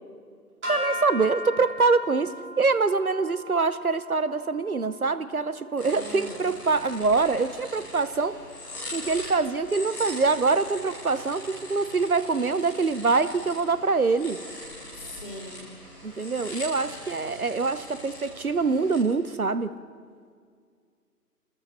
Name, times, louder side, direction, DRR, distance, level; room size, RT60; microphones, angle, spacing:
sound 1, 0.6-7.0, equal, 45° right, 5.8 m, -38 dB
voice 1, 0.7-8.4 8.9-14.4 16.0-19.8, right 4 dB, 60° right, 13 dB, 1.1 m, -25 dB
sound 2, 5.8-19.0, left 1 dB, 5° left, 2.2 m, -41 dB
voice 2, 5.9-6.5 14.9-15.6, left 1 dB, 35° left, 1 dB, 3.7 m, -40 dB
30.0 x 14.5 x 7.3 m, 2.1 s
figure-of-eight pair, 155°, 48 cm